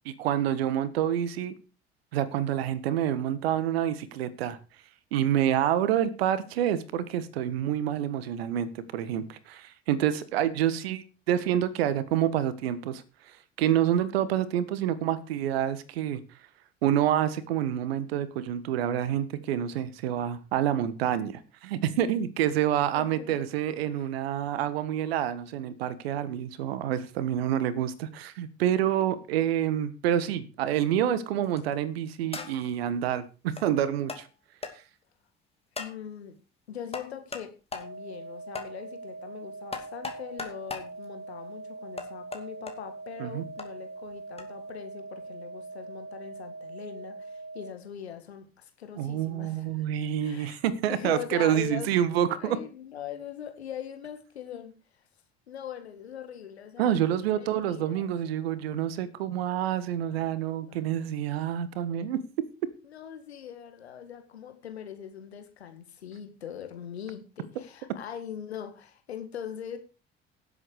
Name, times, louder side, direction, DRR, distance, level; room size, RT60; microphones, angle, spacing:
voice 1, 0.0-1.5 2.1-4.6 5.1-16.2 16.8-34.3 43.2-43.4 49.0-52.6 56.8-62.4, right 10 dB, 70° right, 16 dB, 1.5 m, -28 dB
voice 2, 22.9-23.4 23.9-24.0 35.8-36.4 36.7-49.9 50.2-50.6 50.9-52.0 52.4-55.0 55.5-58.1 60.1-60.3 60.7-61.1 62.8-69.8, left 9 dB, 80° left, 8 dB, 2.0 m, -42 dB
sound 1, 31.4-31.7 32.3-32.8 33.6-33.7 34.1-34.2 34.6-34.7 35.8-36.0 36.9-37.5 37.7-37.9 38.5-38.7 39.7-40.9 42.0-42.7 43.6-43.7 44.4-44.5, left 4 dB, 20° left, 2.8 m, -37 dB
sound 2, 37.7-47.7, right 3 dB, 35° right, 3.1 m, -42 dB
17.0 x 8.1 x 4.8 m, 0.33 s
figure-of-eight pair, 55°, 32 cm